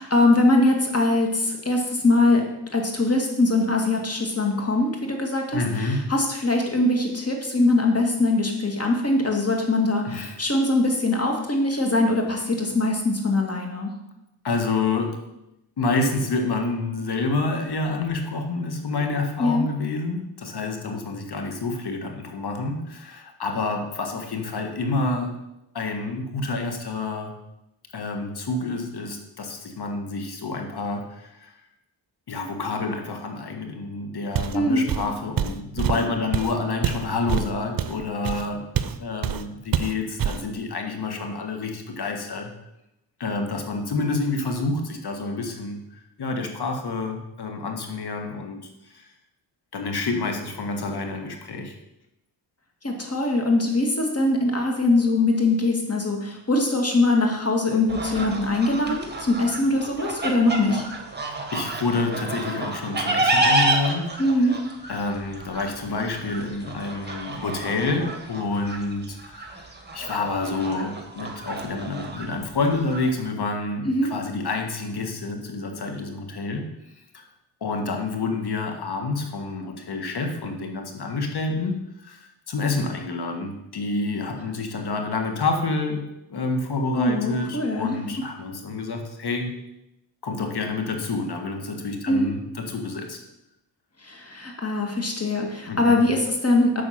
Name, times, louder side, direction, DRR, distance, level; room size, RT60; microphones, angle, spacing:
voice 1, 0.0-2.4 2.7-13.9 19.4-19.7 34.5-34.9 52.8-60.8 64.2-64.6 73.8-74.1 86.9-88.0 92.1-92.3 94.0-96.8, left 2 dB, 30° left, 1 dB, 2.2 m, -22 dB
voice 2, 5.5-6.1 10.0-10.3 14.4-15.2 15.8-25.4 25.7-27.3 27.9-31.5 32.3-38.7 39.0-42.5 43.2-49.1 49.7-51.8 61.5-64.1 64.4-64.5 64.9-69.7 69.9-76.7 77.1-77.2 77.6-86.0 86.3-89.5 90.2-93.2 95.7-96.0, left 3 dB, 55° left, 4 dB, 1.6 m, -28 dB
Walk footsteps, 34.3-34.6 34.9-39.0 39.2-39.5 39.7-40.5, right 9 dB, 50° right, 0.7 m, -26 dB
sound 1, 57.9-73.1, right 2 dB, 20° right, 1.7 m, -30 dB
7.0 x 6.2 x 5.8 m, 0.88 s
supercardioid pair, 50°, 45 cm